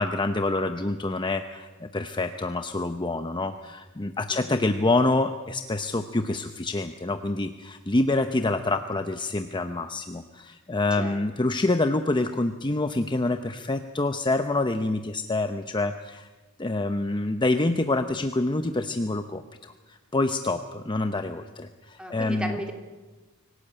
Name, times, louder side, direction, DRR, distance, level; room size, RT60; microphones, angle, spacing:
voice 1, 0.0-16.3 16.6-22.5, left 2 dB, 20° left, 8 dB, 0.8 m, -27 dB
voice 2, 4.3-4.7 11.0-11.2 22.0-22.7, equal, 5° right, 3 dB, 3.1 m, -35 dB
25.0 x 17.5 x 8.9 m, 1.3 s
head